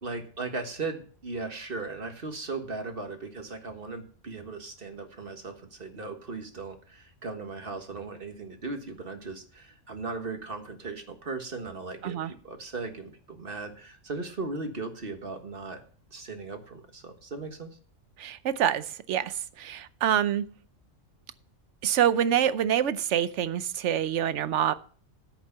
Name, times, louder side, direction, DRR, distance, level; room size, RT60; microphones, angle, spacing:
voice 1, 0.0-15.8 16.1-17.7, right 3 dB, 45° right, 1.7 m, -37 dB
voice 2, 18.2-20.4 21.8-24.7, right 10 dB, 70° right, 1.0 m, -26 dB
10.5 x 8.4 x 5.6 m
omnidirectional pair, 1.3 m